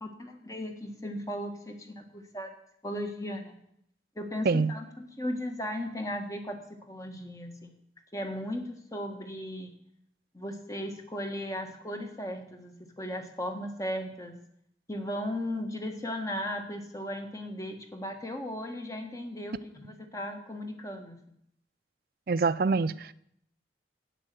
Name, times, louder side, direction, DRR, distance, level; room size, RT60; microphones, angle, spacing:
voice 1, 0.0-2.5 2.8-3.6 4.1-6.6 6.9-7.7 8.1-9.7 10.3-14.3 14.9-21.2, left 1 dB, 20° left, 1.5 m, -36 dB
voice 2, 22.3-23.1, right 4 dB, 55° right, 0.4 m, -25 dB
11.0 x 9.1 x 7.7 m
head